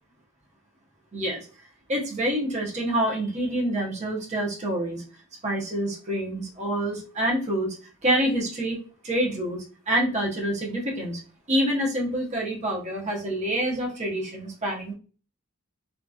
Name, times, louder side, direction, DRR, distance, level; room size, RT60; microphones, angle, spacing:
voice 1, 1.1-1.5 1.9-5.0 5.4-7.8 8.0-9.6 9.9-11.2 11.5-14.9, right 1 dB, 30° right, -2 dB, 0.8 m, -27 dB
2.8 x 2.5 x 2.2 m, 0.38 s
head